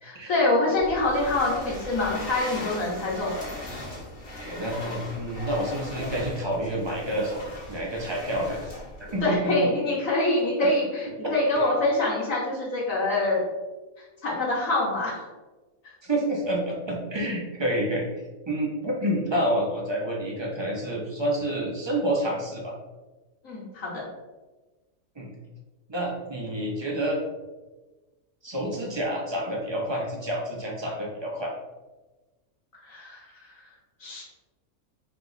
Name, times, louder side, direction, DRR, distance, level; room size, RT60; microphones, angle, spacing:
voice 1, 0.0-3.3 9.2-11.0 11.3-13.4 14.0-15.2 15.8-15.9 23.4-24.0 32.7-33.3 34.0-34.2, left 2 dB, 65° left, -6 dB, 1.3 m, -25 dB
sound 1, 0.8-9.3, left 1 dB, 40° left, 1.0 m, -39 dB
voice 2, 4.4-7.4 7.7-8.8 9.1-9.7 10.6-10.7 11.2-11.6 16.0-18.0 18.5-22.7 25.2-25.3 25.9-27.2 28.4-31.5, right 1 dB, 35° right, -2 dB, 0.4 m, -28 dB
3.3 x 3.0 x 3.8 m, 1.2 s
omnidirectional pair, 1.5 m